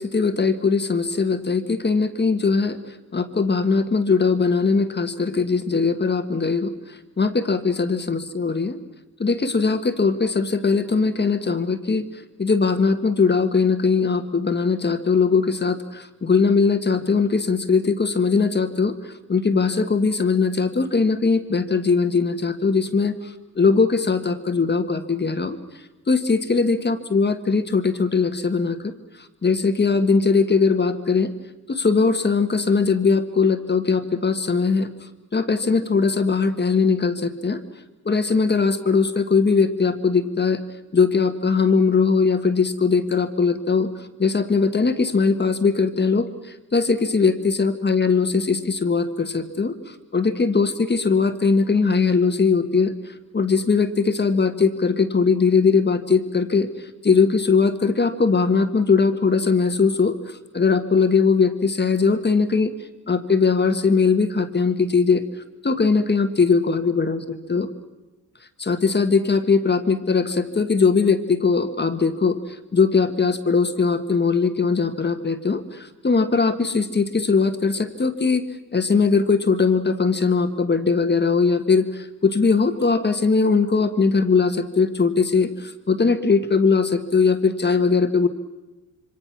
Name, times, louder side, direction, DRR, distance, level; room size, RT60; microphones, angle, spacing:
voice 1, 0.0-8.8 9.2-12.0 12.4-19.0 19.3-25.6 26.1-28.9 29.4-31.3 31.7-34.9 35.3-37.6 38.0-40.6 40.9-43.9 44.2-52.9 53.3-62.7 63.1-65.2 65.6-67.7 68.6-72.4 72.7-78.5 78.7-88.3, left 4 dB, 30° left, 9 dB, 1.5 m, -20 dB
27.0 x 25.0 x 6.0 m, 1.1 s
wide cardioid pair, 120°, 33 cm